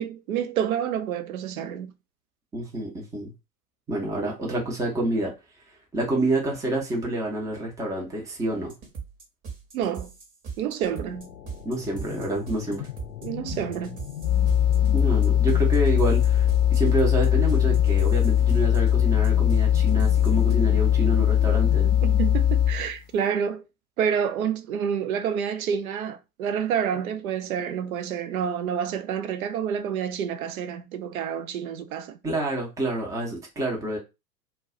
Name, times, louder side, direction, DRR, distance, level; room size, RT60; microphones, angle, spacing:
voice 1, 0.0-1.9 9.7-10.1 10.6-11.3 13.2-14.0 22.0-23.6 24.0-32.2, right 8 dB, 60° right, 0.6 m, -28 dB
voice 2, 2.5-3.3 3.9-5.3 5.9-8.7 11.6-12.8 14.9-21.9 32.2-34.0, right 1 dB, 5° right, 0.6 m, -28 dB
sound 1, 8.7-20.5, right 6 dB, 30° right, 0.9 m, -40 dB
sound 2, 10.8-22.4, left 10 dB, 70° left, 0.6 m, -38 dB
sound 3, 14.2-22.9, left 10 dB, 25° left, 0.8 m, -20 dB
2.3 x 2.1 x 3.6 m
figure-of-eight pair, 100°, 49 cm